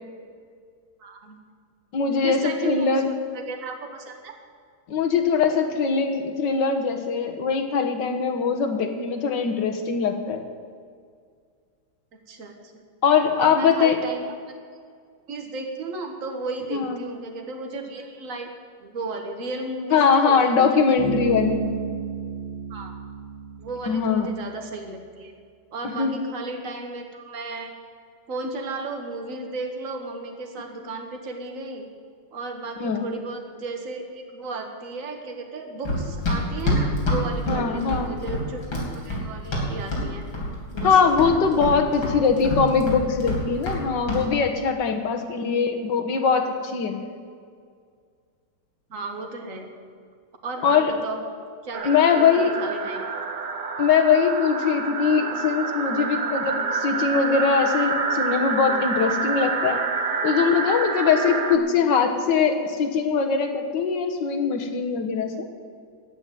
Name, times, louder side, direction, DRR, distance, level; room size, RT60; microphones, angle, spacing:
voice 1, 1.0-1.4 2.2-4.3 12.3-12.8 13.3-14.3 15.3-18.5 18.8-21.0 22.7-22.9 23.6-25.3 25.7-27.7 28.3-31.8 32.3-38.6 39.0-40.3 40.7-41.1 48.9-49.7 50.4-51.2 51.6-53.0, right 3 dB, 45° right, 3 dB, 1.8 m, -34 dB
voice 2, 1.9-3.1 4.9-10.4 13.0-14.0 16.7-17.0 19.9-21.7 23.9-24.3 25.9-26.2 32.8-33.0 37.5-38.1 40.8-47.0 50.6-50.9 51.8-52.6 53.8-59.8 60.2-65.5, left 6 dB, 65° left, 6 dB, 1.9 m, -22 dB
Bass guitar, 21.0-24.5, right 4 dB, 20° left, 1.8 m, -32 dB
Run, 35.9-40.1 40.3-40.9 41.2-43.8 44.1-44.3, left 1 dB, 80° left, 4.1 m, -26 dB
sound 1, 51.7-61.6, right 4 dB, 70° right, 0.4 m, -27 dB
11.5 x 9.0 x 9.1 m, 2.1 s
omnidirectional pair, 2.2 m